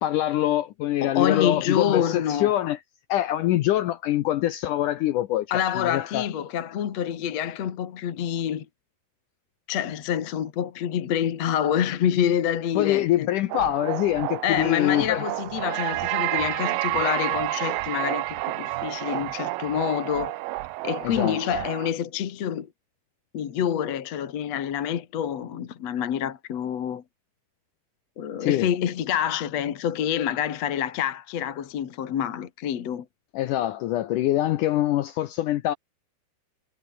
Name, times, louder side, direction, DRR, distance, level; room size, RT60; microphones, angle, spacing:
voice 1, 0.0-2.8 3.1-6.3 12.8-15.2 21.0-21.4 28.4-28.7 33.3-35.7, left 14 dB, 90° left, 1.8 m, -24 dB
voice 2, 1.0-2.5 5.5-8.7 9.7-13.3 14.4-20.3 20.8-22.7 23.3-27.0 28.2-33.1, left 9 dB, 50° left, 2.3 m, -27 dB
sound 1, 13.5-21.9, right 18 dB, 90° right, 1.9 m, -30 dB
omnidirectional pair, 4.8 m